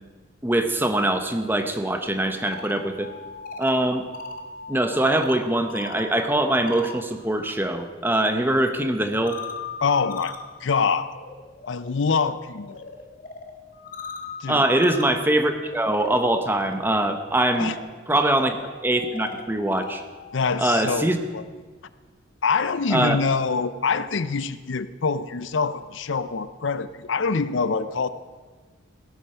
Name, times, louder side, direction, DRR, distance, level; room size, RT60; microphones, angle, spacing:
voice 1, 0.4-3.1 3.6-4.0 4.7-9.4 14.5-17.7 18.1-20.0 20.6-21.2 22.9-23.2, right 1 dB, 10° right, 7 dB, 0.8 m, -23 dB
sound 1, 2.3-7.5 7.8-21.1, left 4 dB, 45° left, 1.1 m, -40 dB
voice 2, 9.8-11.1 11.7-12.8 14.4-14.7 17.6-17.7 20.3-21.4 22.4-28.1, left 5 dB, 70° left, 14 dB, 0.6 m, -25 dB
16.5 x 8.1 x 5.7 m, 1.4 s
head